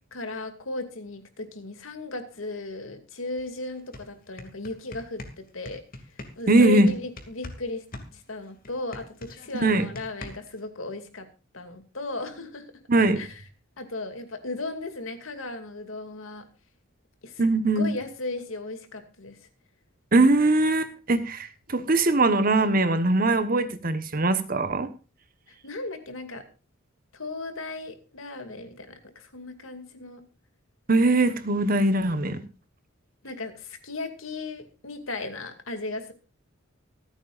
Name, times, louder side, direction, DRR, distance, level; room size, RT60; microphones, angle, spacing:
voice 1, 0.1-5.8 6.1-7.8 8.1-11.3 11.5-12.7 13.2-13.4 13.8-16.4 17.2-17.5 17.8-19.4 25.5-26.4 27.1-30.2 33.2-36.1, left 2 dB, 80° left, 7 dB, 2.5 m, -36 dB
sound 1, 3.4-3.5 3.8-7.6 7.9-10.6, left 1 dB, 45° left, 2.5 m, -42 dB
voice 2, 6.5-6.9 9.5-9.9 12.9-13.2 17.4-17.9 20.1-24.9 30.9-32.4, right 2 dB, 45° right, 10 dB, 1.2 m, -21 dB
25.0 x 9.0 x 2.5 m, 0.33 s
head